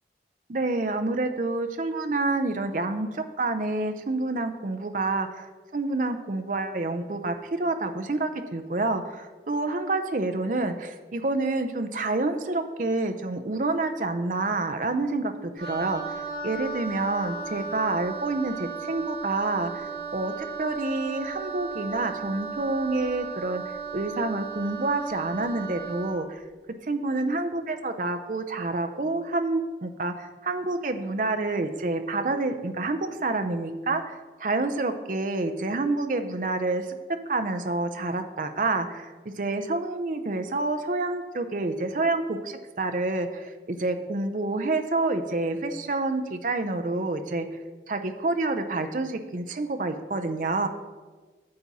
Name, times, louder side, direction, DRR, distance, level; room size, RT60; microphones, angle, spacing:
voice 1, 0.5-23.6 23.9-26.4 26.9-37.0 37.3-39.1 39.4-47.5 47.9-50.7, right 2 dB, 45° right, 7 dB, 0.5 m, -28 dB
Wind instrument woodwind instrument, 15.6-26.2, right 5 dB, 70° right, 2.4 m, -36 dB
8.5 x 7.3 x 4.1 m, 1.4 s
head